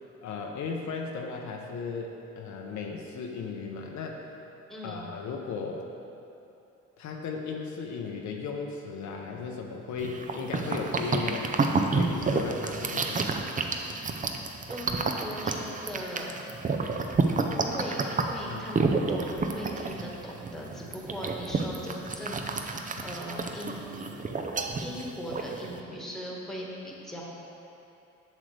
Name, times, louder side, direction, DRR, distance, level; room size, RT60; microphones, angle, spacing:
voice 1, 0.2-4.3 4.8-5.8 7.0-13.4 18.5-18.6 23.0-23.1, left 5 dB, 70° left, 1 dB, 0.7 m, -36 dB
voice 2, 4.7-5.0 14.7-16.3 17.5-24.0 24.8-27.2, equal, ahead, -3 dB, 1.4 m, -39 dB
sound 1, 10.0-25.8, right 3 dB, 25° right, 0.5 m, -30 dB
7.4 x 6.6 x 3.3 m, 2.8 s
cardioid pair, 90°, 30 cm